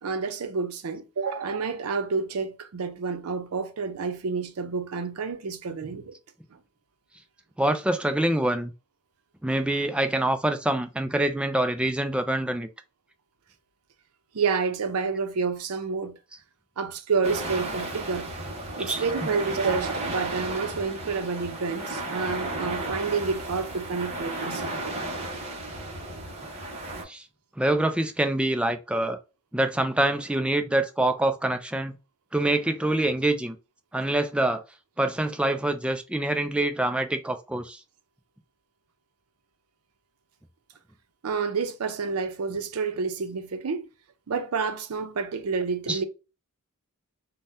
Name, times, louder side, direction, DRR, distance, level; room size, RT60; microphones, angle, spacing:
voice 1, 0.0-6.1 6.5-6.6 14.3-16.1 16.8-18.3 18.8-24.9 41.2-43.9 44.3-46.0, right 5 dB, 80° right, 0.5 m, -29 dB
voice 2, 7.6-8.7 9.4-12.7 18.8-19.3 27.1-27.2 27.6-29.2 29.5-32.0 32.3-33.6 33.9-34.6 35.0-37.8 45.8-46.0, right 1 dB, 5° right, 0.3 m, -25 dB
sound 1, 17.2-27.0, right 2 dB, 30° right, 0.8 m, -34 dB
2.7 x 2.1 x 3.3 m
head